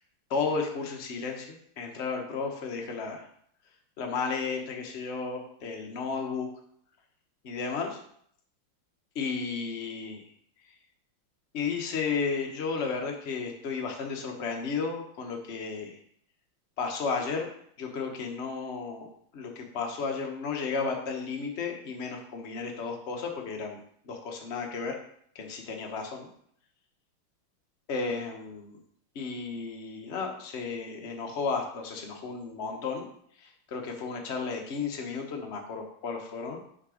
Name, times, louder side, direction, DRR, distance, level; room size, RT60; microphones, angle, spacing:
voice 1, 0.3-3.3 4.0-6.5 7.4-8.0 9.1-10.2 11.5-16.0 16.8-17.5 17.8-19.1 19.3-23.8 24.0-25.0 25.3-26.3 27.9-28.8 29.1-33.1 33.4-36.6, left 5 dB, 40° left, 2 dB, 1.0 m, -33 dB
6.4 x 4.9 x 5.0 m, 0.65 s
omnidirectional pair, 2.4 m